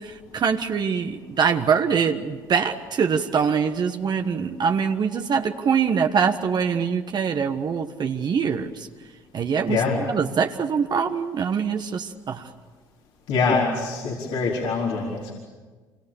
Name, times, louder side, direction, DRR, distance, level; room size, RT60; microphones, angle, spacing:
voice 1, 0.0-8.9 9.3-12.5, right 6 dB, 45° right, 6 dB, 1.4 m, -24 dB
voice 2, 9.7-10.0 13.3-15.3, left 4 dB, 70° left, -3 dB, 4.4 m, -24 dB
26.5 x 25.0 x 7.3 m, 1.4 s
hypercardioid pair, 60°, 10 cm